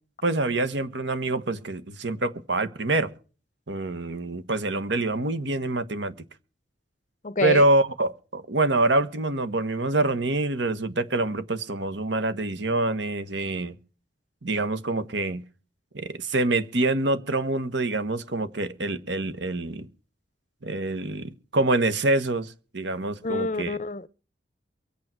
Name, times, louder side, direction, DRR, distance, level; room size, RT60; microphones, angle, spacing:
voice 1, 0.2-3.1 3.7-6.1 7.4-13.7 14.4-15.4 15.9-19.9 20.6-23.8, right 2 dB, 75° right, 1.4 m, -26 dB
voice 2, 7.2-7.6 23.2-24.1, left 2 dB, 40° left, 0.6 m, -27 dB
24.0 x 8.6 x 4.6 m
head